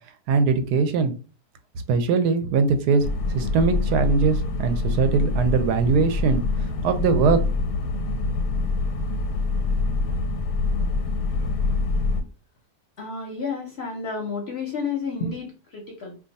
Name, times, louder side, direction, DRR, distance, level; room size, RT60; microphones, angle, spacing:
voice 1, 0.3-1.1 1.9-3.0 3.3-6.4 6.8-7.4, right 5 dB, 80° right, 9 dB, 1.1 m, -21 dB
sound 1, 3.0-12.2, left 3 dB, 85° left, 1.2 m, -25 dB
voice 2, 13.0-16.1, left 4 dB, 55° left, 0 dB, 0.7 m, -31 dB
2.7 x 2.4 x 3.9 m, 0.34 s
omnidirectional pair, 1.7 m